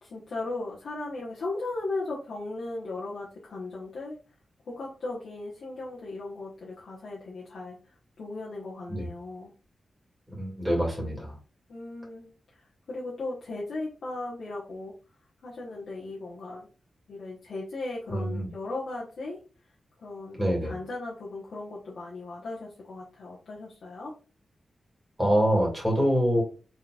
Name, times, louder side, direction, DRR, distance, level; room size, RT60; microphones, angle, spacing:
voice 1, 0.0-4.2 4.7-9.5 11.7-14.9 15.4-16.7 17.1-19.4 20.0-24.1, left 2 dB, 70° left, -5 dB, 1.3 m, -37 dB
voice 2, 10.4-11.3 18.1-18.5 20.4-20.7 25.2-26.4, equal, 5° right, -3 dB, 2.4 m, -25 dB
4.2 x 3.9 x 2.4 m, 0.35 s
wide cardioid pair, 140°, 0 cm